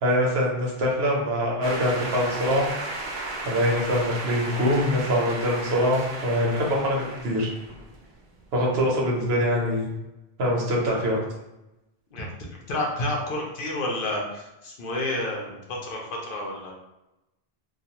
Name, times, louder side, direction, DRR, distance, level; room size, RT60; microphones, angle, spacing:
voice 1, 0.0-2.7 3.4-7.5 8.5-9.9 10.4-11.2, equal, 75° right, -3 dB, 1.0 m, -24 dB
sound 1, 1.6-8.4, right 2 dB, 60° right, 0.6 m, -35 dB
voice 2, 12.7-16.7, left 1 dB, 65° left, -1 dB, 0.7 m, -30 dB
2.4 x 2.3 x 2.8 m, 0.94 s
omnidirectional pair, 1.0 m